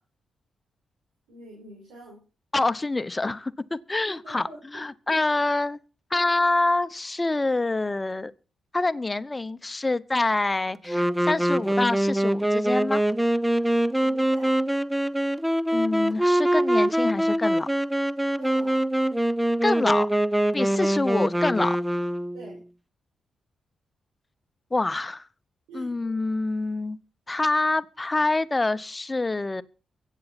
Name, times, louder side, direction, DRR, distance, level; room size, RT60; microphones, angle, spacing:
voice 1, 1.3-2.2 4.0-4.7 5.0-5.4 14.0-14.6 18.4-18.9 20.7-21.0 22.3-22.6 25.7-26.0, right 2 dB, 85° right, 5.4 m, -45 dB
voice 2, 2.5-4.5 4.7-5.8 6.1-8.3 8.7-13.0 15.7-17.7 19.6-20.1 20.5-21.8 24.7-25.3 25.7-27.0 27.3-29.6, left 2 dB, 25° left, 0.9 m, -26 dB
Wind instrument woodwind instrument, 10.9-22.6, right 1 dB, 5° right, 0.7 m, -24 dB
23.5 x 8.3 x 4.2 m
supercardioid pair, 45°, 0 cm